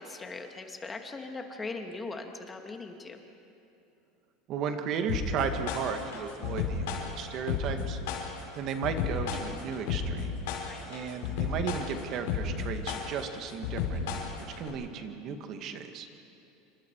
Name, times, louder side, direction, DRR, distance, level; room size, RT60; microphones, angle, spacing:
voice 1, 0.0-3.2 10.7-10.9, left 3 dB, 20° left, 4 dB, 2.3 m, -40 dB
voice 2, 4.5-8.0 8.5-10.4 10.9-14.0 14.6-16.1, right 6 dB, 50° right, 6 dB, 2.2 m, -35 dB
sound 1, 5.1-14.7, left 6 dB, 80° left, 4.5 m, -32 dB
27.5 x 25.5 x 4.9 m, 2.7 s
supercardioid pair, 115°, 0 cm